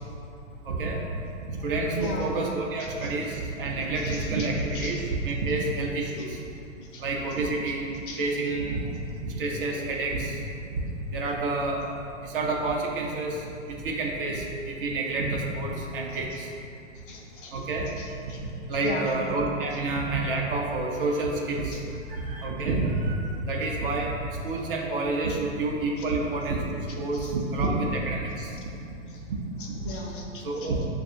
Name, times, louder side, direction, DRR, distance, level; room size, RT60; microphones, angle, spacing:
voice 1, 0.6-1.2 1.5-6.4 7.0-7.9 8.2-8.8 9.2-10.4 11.1-11.8 12.2-16.5 17.5-17.9 18.2-21.8 22.1-28.6 29.3-29.4 29.7-29.8 30.4-30.9, right 2 dB, 45° right, -1 dB, 0.6 m, -29 dB
voice 2, 2.0-2.3 4.0-4.2 4.7-4.9 6.9-7.0 8.1-8.2 17.1-17.5 18.0-18.4 18.8-19.1 27.2-27.3 29.8-30.7, left 3 dB, 40° left, -1 dB, 0.6 m, -36 dB
6.5 x 2.4 x 2.6 m, 2.5 s
figure-of-eight pair, 115°, 40 cm